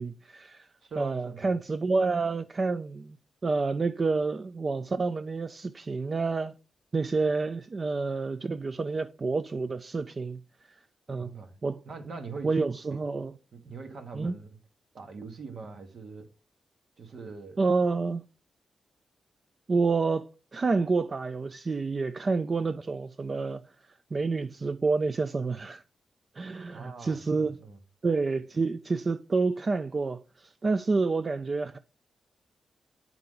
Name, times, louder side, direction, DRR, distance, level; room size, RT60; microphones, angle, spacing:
voice 1, 0.0-0.7 1.0-3.2 3.4-6.5 6.9-10.4 10.7-10.8 11.1-11.3 11.6-11.8 12.4-13.3 14.1-14.3 17.6-18.2 19.7-23.6 24.1-25.8 26.4-27.6 28.0-31.8, right 4 dB, 35° right, 0.3 m, -28 dB
voice 2, 0.8-1.5 11.2-11.6 11.8-12.6 12.9-13.0 13.5-14.6 14.9-16.3 17.0-17.6 26.7-27.8, right 4 dB, 60° right, 1.4 m, -42 dB
8.8 x 4.7 x 3.7 m
cardioid pair, 105°, 0 cm